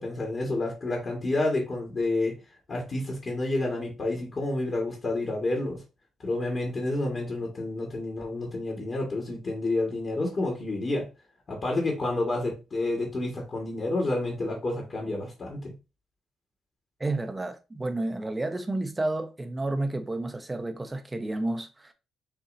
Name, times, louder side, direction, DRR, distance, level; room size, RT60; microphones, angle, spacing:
voice 1, 0.0-2.4 2.7-5.8 6.2-11.1 11.5-15.8, left 2 dB, 40° left, 1.8 m, -29 dB
voice 2, 17.0-21.9, right 2 dB, 20° right, 0.8 m, -31 dB
6.7 x 2.8 x 2.7 m
cardioid pair, 90°, 0 cm